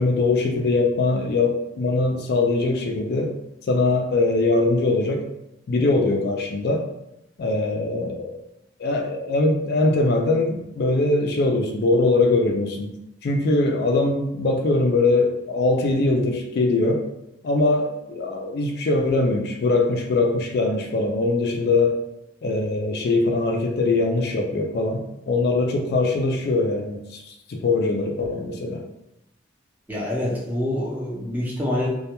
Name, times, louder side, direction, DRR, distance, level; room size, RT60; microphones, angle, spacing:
voice 1, 0.0-3.3 3.7-5.2 5.7-6.8 7.4-8.4 8.8-12.9 13.2-17.0 17.4-22.0 22.4-28.8, left 2 dB, 55° left, 2 dB, 0.3 m, -22 dB
voice 2, 29.9-31.9, left 1 dB, 10° right, -4 dB, 0.5 m, -26 dB
2.2 x 2.1 x 2.8 m, 0.85 s
head